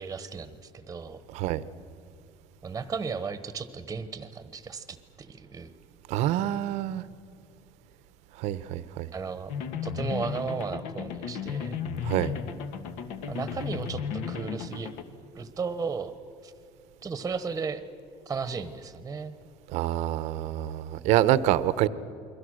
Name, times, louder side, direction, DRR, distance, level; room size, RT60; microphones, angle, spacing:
voice 1, 0.0-1.2 2.6-5.7 9.1-9.5 9.8-11.8 13.3-14.9 15.3-16.1 16.4-16.5 17.0-17.8 18.3-19.3, right 5 dB, 20° right, 12 dB, 1.1 m, -35 dB
voice 2, 1.3-1.6 6.1-7.0 8.4-9.1 12.0-12.3 19.7-21.9, right 13 dB, 65° right, 16 dB, 0.9 m, -26 dB
sound 1, 9.5-15.0, left 7 dB, 70° left, 1.8 m, -34 dB
29.5 x 22.5 x 6.4 m, 2.7 s
cardioid pair, 135°, 13 cm